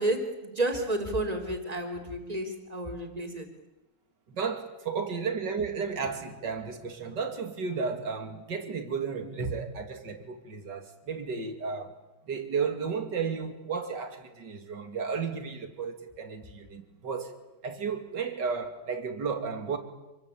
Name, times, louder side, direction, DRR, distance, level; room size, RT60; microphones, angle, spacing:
voice 1, 0.0-3.5, right 1 dB, 20° right, 6 dB, 3.8 m, -31 dB
voice 2, 4.3-11.9 12.3-17.3 17.6-19.8, right 5 dB, 70° right, 7 dB, 3.2 m, -33 dB
27.5 x 22.5 x 8.9 m, 1.0 s
omnidirectional pair, 2.0 m